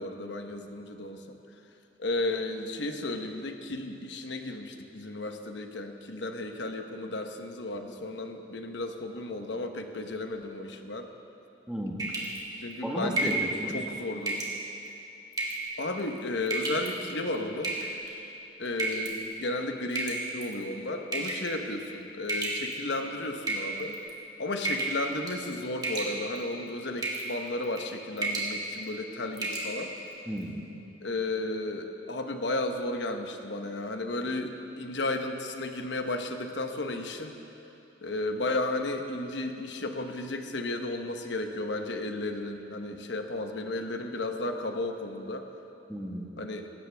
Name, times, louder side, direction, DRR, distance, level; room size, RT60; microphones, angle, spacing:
voice 1, 0.0-1.4 2.0-11.1 12.6-13.4 13.7-14.4 15.8-17.8 18.6-24.0 24.4-29.9 31.0-37.3 38.0-45.5 46.4-46.7, left 2 dB, 70° left, 5 dB, 1.0 m, -34 dB
voice 2, 11.7-12.0 12.8-13.8 30.3-30.6 45.9-46.3, equal, 5° right, -2 dB, 1.4 m, -34 dB
sound 1, 12.0-12.4 13.2-13.5 14.3-14.5 15.3-15.7 16.5-16.9 17.6-18.1 18.8-19.1 20.0-20.5 21.1-21.5 22.3-22.9 23.4-24.1 24.6-25.0 25.3-25.5 25.8-26.4 27.0-27.3 27.6-27.9 28.2-28.5 28.9-29.0 29.4-29.7, right 2 dB, 20° right, 2.1 m, -31 dB
18.5 x 16.5 x 3.4 m, 2.9 s
head